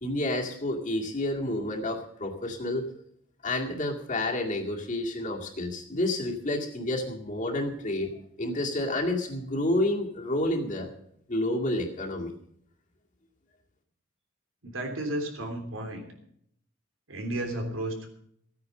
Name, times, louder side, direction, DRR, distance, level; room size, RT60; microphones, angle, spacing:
voice 1, 0.0-2.9 3.4-10.9 11.3-12.3, left 1 dB, 40° left, -1 dB, 2.2 m, -29 dB
voice 2, 14.6-16.1 17.1-18.1, right 1 dB, 85° right, 4 dB, 3.3 m, -33 dB
15.0 x 9.5 x 6.5 m, 0.68 s
head